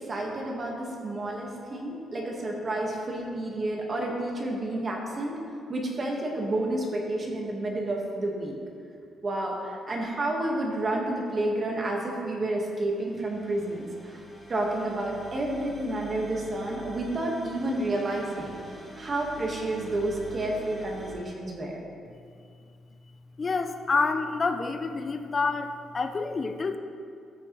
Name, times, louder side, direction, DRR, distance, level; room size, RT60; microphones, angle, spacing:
voice 1, 0.0-5.4 5.7-8.5 9.2-14.2 14.5-18.6 19.0-21.8, right 1 dB, 30° right, -1 dB, 1.3 m, -30 dB
sound 1, 12.9-21.1, right 1 dB, 5° right, 2.0 m, -46 dB
voice 2, 23.4-26.8, left 4 dB, 25° left, 8 dB, 0.4 m, -28 dB
14.0 x 6.3 x 3.0 m, 2.4 s
cardioid pair, 160°, 0 cm